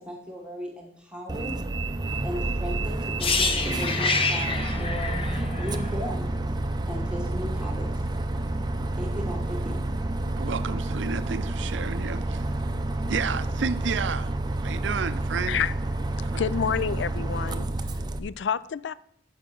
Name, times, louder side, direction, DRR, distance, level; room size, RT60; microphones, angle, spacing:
voice 1, 0.0-1.6 2.2-5.3 5.6-6.4 6.9-8.0 9.0-9.9, equal, 5° right, 1.3 m, -36 dB
Bus, 1.3-18.2, right 2 dB, 25° right, 0.5 m, -29 dB
sound 1, 3.2-7.1 7.3-7.5, left 4 dB, 30° left, 0.8 m, -28 dB
voice 2, 10.4-12.4 13.1-14.3 14.6-15.6 16.3-16.4, right 6 dB, 75° right, 0.5 m, -31 dB
voice 3, 16.4-17.7 18.2-18.9, left 7 dB, 70° left, 0.4 m, -28 dB
11.0 x 6.6 x 3.9 m
head